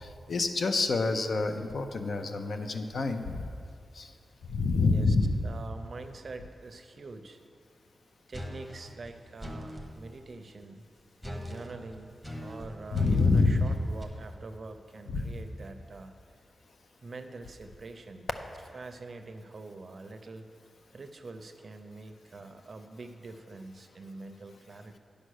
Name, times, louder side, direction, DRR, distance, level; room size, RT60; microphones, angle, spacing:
voice 1, 0.0-3.4 4.0-4.1 4.5-5.4 12.9-13.7 15.1-15.4, left 3 dB, 60° left, 6 dB, 0.6 m, -27 dB
voice 2, 5.4-7.4 8.3-10.9 11.3-16.1 17.0-18.3 18.7-20.4 20.9-25.0, right 3 dB, 45° right, 8 dB, 0.5 m, -45 dB
sound 1, 8.3-9.9 11.2-14.0, equal, 5° left, 1.0 m, -41 dB
10.0 x 5.2 x 6.4 m, 2.4 s
wide cardioid pair, 160°, 0 cm